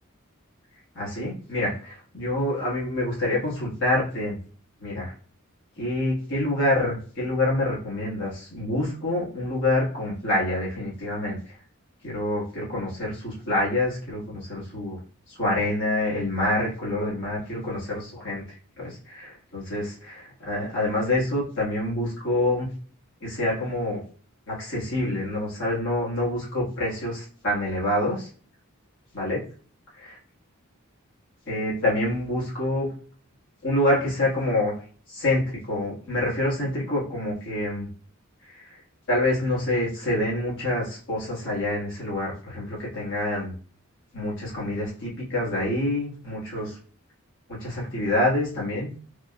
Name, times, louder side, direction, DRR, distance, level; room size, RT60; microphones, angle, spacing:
voice 1, 0.9-4.4 4.8-5.1 5.8-11.6 12.0-15.0 15.3-22.7 23.2-24.0 24.5-28.3 29.1-29.4 29.9-30.2 31.4-32.9 33.6-34.7 35.1-37.9 38.4-38.8 39.1-43.5 44.1-46.8 47.5-48.9, left 1 dB, 60° left, -6 dB, 1.5 m, -27 dB
3.6 x 2.3 x 2.3 m, 0.42 s
head